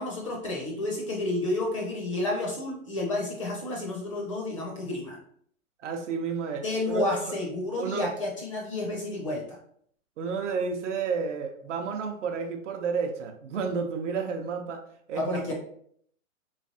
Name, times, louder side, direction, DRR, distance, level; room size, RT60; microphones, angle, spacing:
voice 1, 0.0-5.2 6.6-9.6 15.1-15.5, left 2 dB, 25° left, -1 dB, 0.4 m, -30 dB
voice 2, 5.8-7.3 7.8-8.1 10.2-15.5, right 5 dB, 60° right, 5 dB, 0.7 m, -31 dB
3.2 x 3.2 x 2.6 m, 0.63 s
hypercardioid pair, 155°, 41 cm